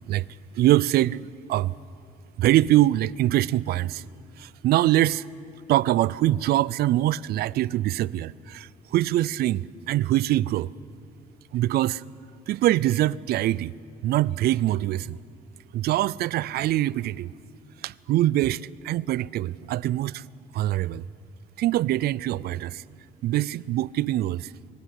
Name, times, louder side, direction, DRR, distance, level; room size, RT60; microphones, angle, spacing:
voice 1, 0.5-1.2 1.5-1.7 2.4-4.0 4.4-5.2 5.7-10.7 11.5-12.0 12.5-13.7 14.0-15.2 15.7-17.3 17.8-20.2 20.5-21.0 21.6-22.8 23.2-24.5, right 14 dB, 70° right, 0.5 m, -23 dB
24.0 x 20.0 x 8.2 m
cardioid pair, 110°, 17 cm